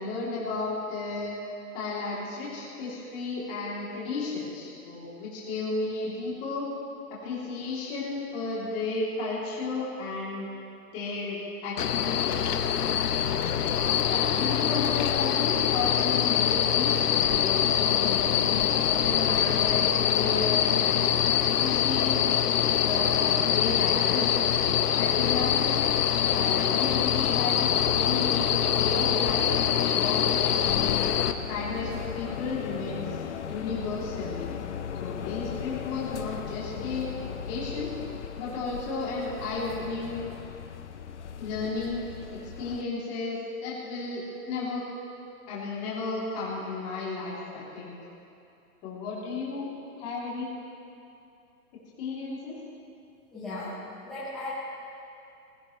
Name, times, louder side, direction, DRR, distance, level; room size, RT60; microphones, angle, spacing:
voice 1, 0.0-1.4 1.7-4.5 4.8-6.7 7.2-10.5 10.9-12.7 13.4-13.7 14.0-21.1 21.6-22.2 22.8-25.8 26.3-29.5 29.7-31.1 31.5-33.2 33.5-34.5 34.9-37.9 38.4-40.2 41.4-42.1 42.6-44.8 45.5-47.9 48.8-49.7 49.9-50.5 52.0-52.6, left 3 dB, 15° left, -7 dB, 2.9 m, -33 dB
sound 1, 11.8-31.3, left 9 dB, 85° left, 1.0 m, -24 dB
sound 2, 30.5-42.8, left 8 dB, 50° left, 0.7 m, -38 dB
voice 2, 53.3-54.5, left 2 dB, ahead, -17 dB, 0.7 m, -37 dB
21.0 x 15.0 x 3.2 m, 2.7 s
hypercardioid pair, 175°, 45 cm